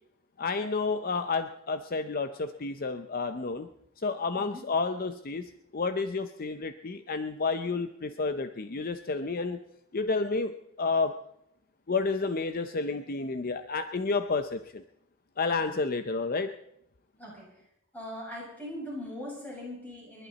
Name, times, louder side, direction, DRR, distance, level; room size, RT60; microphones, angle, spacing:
voice 1, 0.4-3.7 4.0-9.6 9.9-11.1 11.9-14.8 15.4-16.5, left 4 dB, 45° left, 9 dB, 0.7 m, -30 dB
voice 2, 4.4-4.7 17.2-17.5 17.9-20.3, left 1 dB, 10° left, -5 dB, 7.6 m, -40 dB
30.0 x 11.5 x 4.2 m, 0.77 s
head